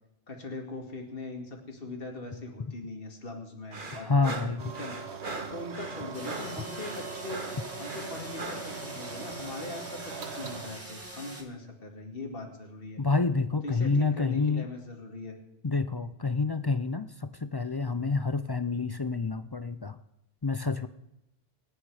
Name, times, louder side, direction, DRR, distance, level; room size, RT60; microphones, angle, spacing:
voice 1, 0.3-4.5 4.8-5.0 5.5-7.4 7.8-13.0 13.6-15.4, left 2 dB, 60° left, 2 dB, 2.5 m, -40 dB
sound 1, 3.7-8.7, right 3 dB, 50° right, 1.7 m, -40 dB
voice 2, 4.0-4.7 13.0-14.7 15.6-20.0 20.4-20.9, left 4 dB, 35° left, 12 dB, 0.4 m, -28 dB
sound 2, 4.6-10.7, right 5 dB, 85° right, 1.4 m, -41 dB
sound 3, 6.1-11.4, right 1 dB, 15° right, 2.1 m, -43 dB
27.5 x 9.4 x 4.9 m, 0.86 s
omnidirectional pair, 1.1 m